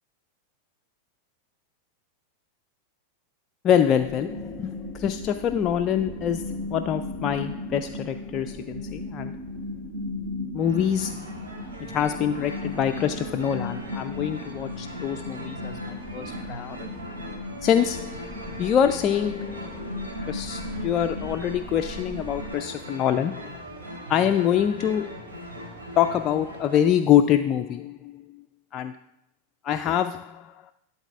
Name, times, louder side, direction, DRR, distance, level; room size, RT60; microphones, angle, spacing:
voice 1, 3.6-9.3 10.5-11.3 11.9-16.9 17.6-20.0 20.3-23.5 24.1-25.3 26.0-28.2 28.7-28.9 29.6-30.5, left 9 dB, 30° left, 8 dB, 0.4 m, -25 dB
sound 1, 4.0-22.6, left 2 dB, 35° right, 4.5 m, -36 dB
sound 2, 10.6-26.8, equal, 65° right, 2.6 m, -40 dB
12.0 x 4.1 x 6.8 m, 0.80 s
figure-of-eight pair, 90°, 0 cm